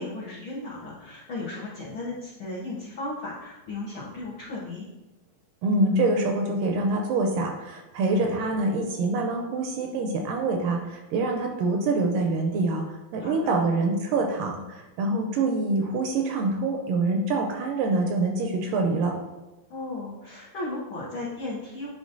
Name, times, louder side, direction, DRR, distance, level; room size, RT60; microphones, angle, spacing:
voice 1, 0.0-4.9 13.2-13.7 19.7-21.9, left 2 dB, 90° left, -7 dB, 1.1 m, -35 dB
voice 2, 5.6-19.1, right 2 dB, 80° right, 2 dB, 2.0 m, -25 dB
10.0 x 3.6 x 2.6 m, 1.1 s
omnidirectional pair, 4.1 m